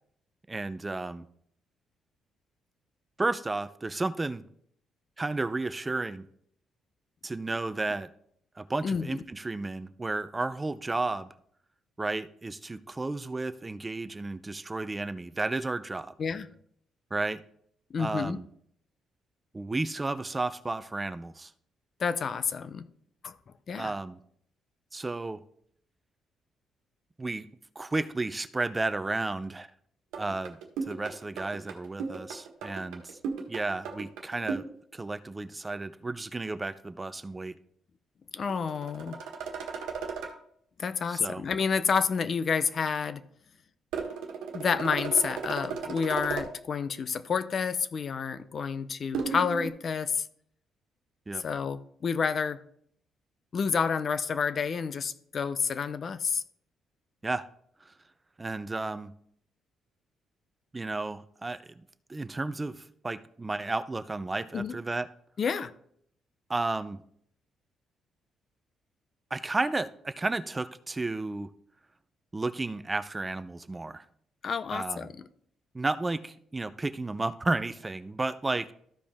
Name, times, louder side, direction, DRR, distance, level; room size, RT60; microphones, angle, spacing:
voice 1, 0.5-1.3 3.2-4.4 5.2-6.2 7.2-8.1 8.6-11.3 12.0-16.1 17.1-17.4 18.0-18.5 19.5-21.5 23.7-24.2 24.9-25.4 27.2-27.4 27.8-29.7 30.2-30.6 30.9-33.2 33.5-34.7 34.9-37.6 41.1-41.4 51.3-51.4 57.2-57.5 57.9-58.0 58.4-59.1 60.7-61.8 62.1-65.1 66.5-67.0 69.3-71.5 72.3-74.0 74.7-75.1 75.7-78.7, right 2 dB, 20° right, 0.5 m, -32 dB
voice 2, 8.8-9.2 16.2-16.5 17.9-18.4 22.0-22.8 23.2-23.3 23.7-23.9 38.3-39.2 40.8-43.2 44.5-50.3 51.4-52.6 53.5-56.4 64.5-64.8 65.4-65.7 74.4-75.2, left 6 dB, 50° left, 0.6 m, -29 dB
sound 1, 30.1-34.7 38.5-40.4 43.9-46.5 49.1-49.7, right 5 dB, 90° right, 1.3 m, -35 dB
13.5 x 5.0 x 3.5 m
cardioid pair, 90°, 0 cm